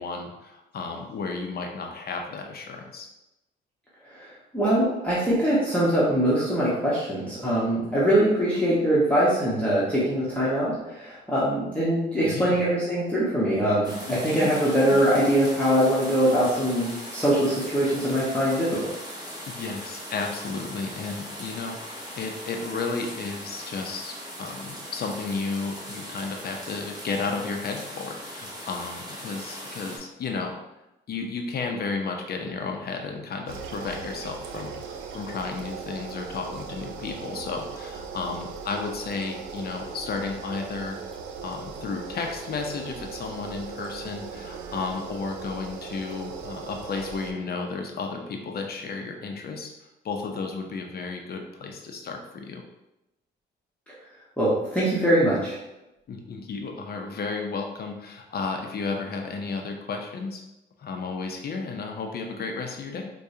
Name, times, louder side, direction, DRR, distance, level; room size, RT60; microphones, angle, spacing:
voice 1, 0.0-3.1 8.6-8.7 12.2-12.6 14.1-15.0 19.5-30.6 31.1-34.8 35.1-41.0 41.4-49.7 50.0-52.6 56.1-60.4 60.8-63.1, left 4 dB, 50° left, 3 dB, 0.6 m, -33 dB
voice 2, 4.1-18.9 54.4-55.6, right 1 dB, 5° left, -9 dB, 1.1 m, -23 dB
sound 1, 13.8-30.0, equal, 20° right, 1.1 m, -39 dB
sound 2, 33.5-47.3, right 5 dB, 80° right, 0.5 m, -38 dB
4.6 x 2.3 x 2.7 m, 0.92 s
cardioid pair, 90°, 20 cm